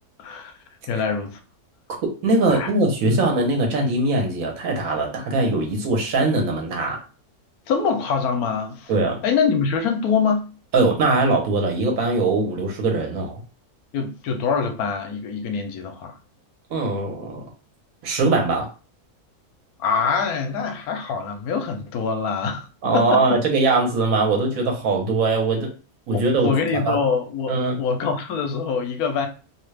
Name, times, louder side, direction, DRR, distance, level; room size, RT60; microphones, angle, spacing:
voice 1, 0.2-0.5 0.9-1.4 2.5-2.7 3.1-3.2 7.7-8.9 9.2-10.5 13.9-16.1 19.8-23.4 26.4-27.5 27.8-29.3, left 5 dB, 75° left, 1.1 m, -24 dB
voice 2, 2.0-7.0 8.9-9.2 10.7-13.4 16.7-17.4 18.0-18.7 22.8-25.7 26.1-26.5 26.8-27.0 27.5-27.8, right 3 dB, 65° right, 1.3 m, -21 dB
2.9 x 2.3 x 3.2 m
omnidirectional pair, 1.6 m